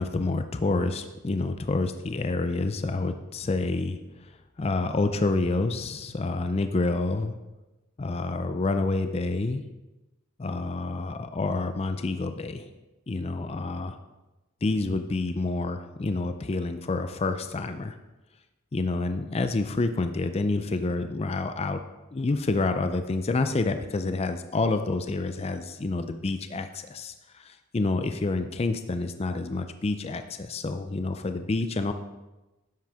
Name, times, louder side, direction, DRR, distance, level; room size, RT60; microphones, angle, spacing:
voice 1, 0.0-4.3 4.6-7.3 8.0-9.6 10.4-12.7 13.1-14.0 14.6-18.0 18.7-21.8 22.1-31.9, left 3 dB, 30° left, 8 dB, 0.4 m, -28 dB
10.5 x 7.6 x 3.5 m, 1.1 s
head